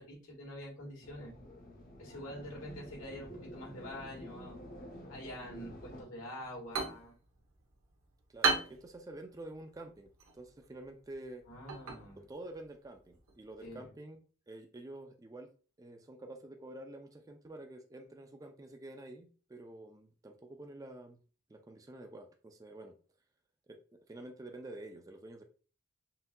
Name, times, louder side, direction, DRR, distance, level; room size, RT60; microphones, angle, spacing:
voice 1, 0.0-1.3 2.0-4.6 5.1-7.1 11.5-12.2 13.6-13.9, equal, 85° left, -2 dB, 1.7 m, -46 dB
sound 1, 1.0-6.0, equal, 45° left, 0.8 m, -49 dB
sound 2, 6.4-13.9, right 4 dB, 85° right, 1.0 m, -39 dB
voice 2, 8.3-11.5 12.2-14.2 14.5-15.5 15.8-21.2 21.5-23.0 23.7-23.8 24.1-25.4, right 1 dB, 15° right, 5 dB, 0.3 m, -48 dB
5.6 x 2.7 x 2.2 m, 0.38 s
head